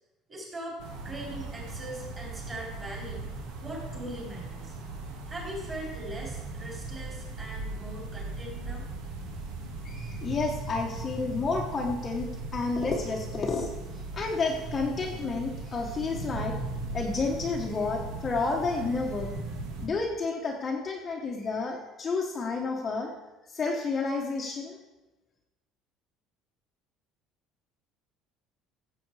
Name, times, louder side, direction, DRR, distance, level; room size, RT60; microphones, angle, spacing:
voice 1, 0.3-0.8 1.0-3.3 3.6-4.7 5.3-8.9, right 1 dB, 20° right, -3 dB, 4.1 m, -40 dB
sound 1, 0.8-19.9, right 3 dB, 75° right, 1.8 m, -38 dB
voice 2, 9.8-13.7 14.1-16.6 16.9-19.3 19.8-23.1 23.5-24.8, left 4 dB, 20° left, 0 dB, 1.0 m, -30 dB
15.0 x 7.8 x 4.8 m, 1.1 s
cardioid pair, 165°, 0 cm